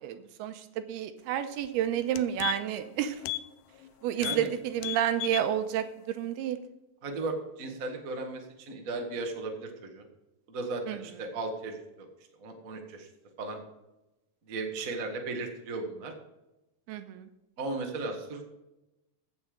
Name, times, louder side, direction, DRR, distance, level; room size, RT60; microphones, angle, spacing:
voice 1, 0.0-3.2 4.0-6.6 10.9-11.0 16.9-17.3, right 10 dB, 85° right, 10 dB, 2.7 m, -30 dB
sound 1, 1.5-1.7 2.0-2.8 3.2-3.5 3.8-3.9 4.2-4.5 4.8-5.5 5.9-6.0, left 17 dB, 85° left, 2.6 m, -35 dB
voice 2, 4.2-4.5 7.0-10.0 10.5-12.1 12.4-13.1 13.4-13.6 14.5-16.1 17.6-18.4, right 3 dB, 55° right, 3 dB, 0.9 m, -36 dB
15.5 x 6.7 x 5.1 m, 0.94 s
omnidirectional pair, 4.6 m